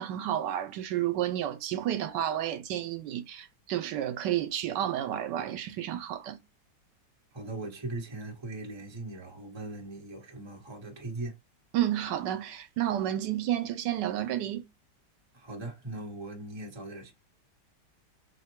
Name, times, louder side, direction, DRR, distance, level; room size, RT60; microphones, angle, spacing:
voice 1, 0.0-6.4 11.7-14.7, right 11 dB, 80° right, 1.2 m, -31 dB
voice 2, 7.3-11.3 15.3-17.1, right 2 dB, 20° right, 0.9 m, -39 dB
3.6 x 2.1 x 4.3 m
omnidirectional pair, 1.9 m